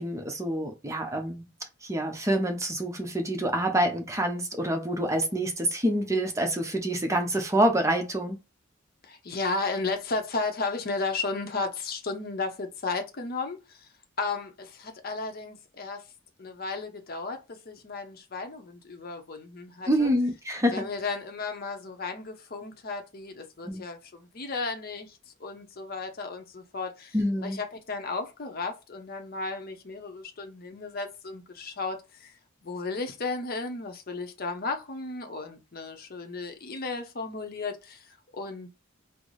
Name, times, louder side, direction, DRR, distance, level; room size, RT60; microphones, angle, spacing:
voice 1, 0.0-1.5 1.8-8.4 19.9-20.8 23.6-23.8 27.1-27.6, right 1 dB, 15° right, 0.6 m, -27 dB
voice 2, 9.0-13.9 14.2-16.0 16.4-20.1 20.7-27.2 27.4-38.7, left 3 dB, 45° left, 0.7 m, -34 dB
3.9 x 2.0 x 3.1 m
head